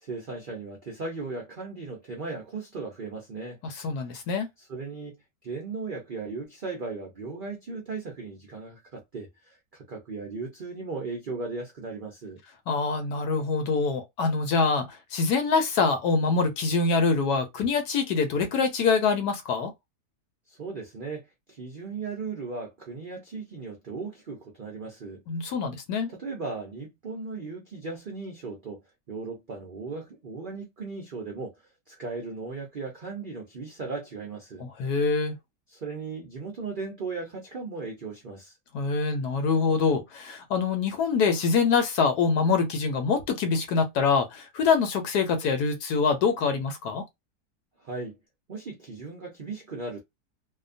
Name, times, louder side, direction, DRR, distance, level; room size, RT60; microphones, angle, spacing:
voice 1, 0.0-3.6 4.6-12.4 20.5-25.2 26.1-28.8 29.1-31.5 31.9-34.7 35.7-38.5 47.8-48.1 48.5-50.0, right 4 dB, 60° right, 0.5 m, -37 dB
voice 2, 3.6-4.5 12.7-19.7 25.3-26.1 34.6-35.3 38.7-47.0, left 5 dB, 75° left, 1.2 m, -25 dB
2.8 x 2.2 x 2.5 m
omnidirectional pair, 1.8 m